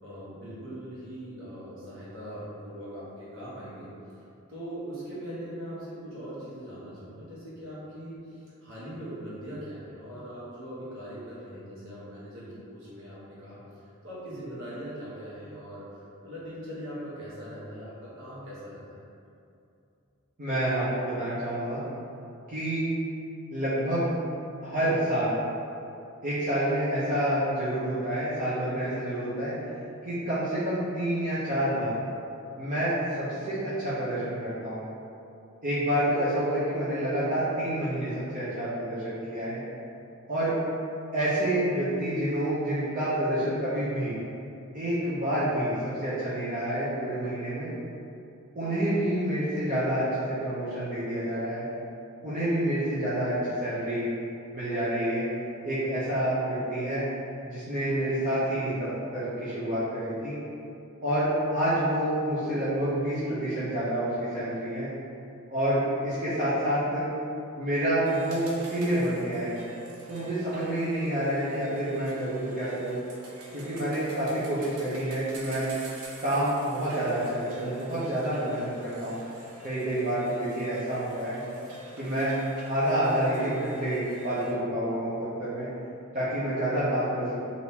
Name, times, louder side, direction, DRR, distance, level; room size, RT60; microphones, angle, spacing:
voice 1, 0.0-3.9 4.5-19.0, equal, 60° right, -9 dB, 1.1 m, -41 dB
voice 2, 20.4-21.8 22.5-22.9 23.5-24.1 24.6-25.4 26.2-29.5 30.0-31.9 32.6-34.9 35.6-39.6 40.3-40.5 41.1-44.1 44.7-45.7 46.0-47.7 48.5-51.6 52.2-54.1 54.5-55.2 55.6-57.1 57.4-60.4 61.0-64.9 65.5-67.1 67.6-69.6 70.1-73.0 73.5-75.7 76.2-79.2 79.6-81.4 82.0-82.3 82.7-85.7 86.1-87.4, right 1 dB, 40° right, -13 dB, 0.7 m, -28 dB
sound 1, 68.0-84.5, right 1 dB, 80° right, 0.6 m, -45 dB
3.5 x 2.6 x 2.8 m, 2.6 s
head